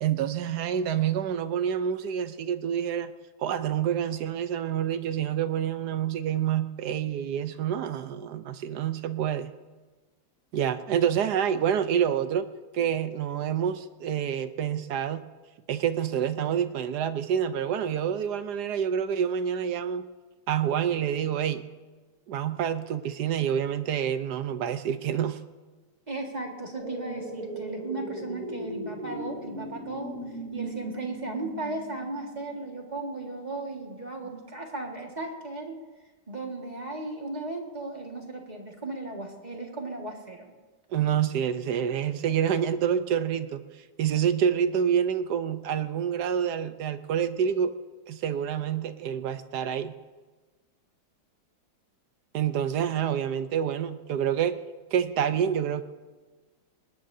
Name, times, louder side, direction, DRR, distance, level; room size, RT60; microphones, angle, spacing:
voice 1, 0.0-3.1 3.4-9.5 10.5-12.5 12.7-15.2 15.7-20.1 20.5-21.7 22.3-25.4 40.9-43.6 44.0-47.7 48.1-49.9 52.3-54.6 54.9-55.8, right 9 dB, 65° right, 11 dB, 1.1 m, -27 dB
voice 2, 26.1-30.2 30.5-35.8 36.3-40.5, right 2 dB, 20° right, 1 dB, 1.7 m, -36 dB
sound 1, 26.7-32.9 33.2-33.3, right 2 dB, 50° right, 7.2 m, -38 dB
20.5 x 19.0 x 2.7 m, 1.3 s
omnidirectional pair, 2.1 m